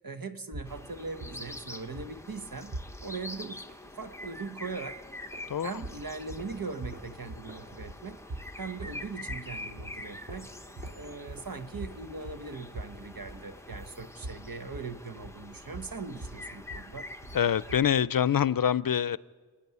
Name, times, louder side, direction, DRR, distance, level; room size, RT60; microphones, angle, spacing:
voice 1, 0.0-2.8 3.0-3.7 4.0-5.0 5.6-8.2 8.6-10.5 11.0-17.1, right 4 dB, 80° right, 8 dB, 1.2 m, -40 dB
sound 1, 0.5-3.3 5.7-18.1, right 2 dB, 50° right, 0.9 m, -44 dB
sound 2, 0.6-17.8, left 1 dB, 10° left, 0.9 m, -45 dB
sound 3, 3.1-14.2, left 1 dB, 25° right, 3.9 m, -55 dB
voice 2, 17.3-19.2, left 9 dB, 80° left, 18 dB, 0.5 m, -25 dB
27.0 x 10.5 x 9.5 m, 1.5 s
wide cardioid pair, 55°, 34 cm